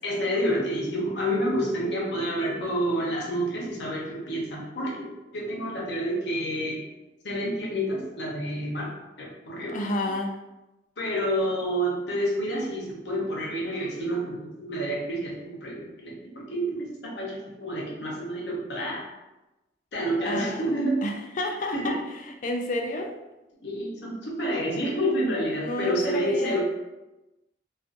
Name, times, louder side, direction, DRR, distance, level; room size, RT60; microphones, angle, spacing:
voice 1, 0.0-6.8 7.2-8.9 9.2-9.9 11.0-19.1 19.9-21.0 21.7-22.0 23.6-26.6, equal, 80° left, -3 dB, 0.8 m, -29 dB
voice 2, 9.7-10.4 20.2-20.7 21.0-23.1 25.6-26.6, left 2 dB, 45° left, 2 dB, 0.3 m, -30 dB
2.5 x 2.4 x 2.5 m, 1.0 s
head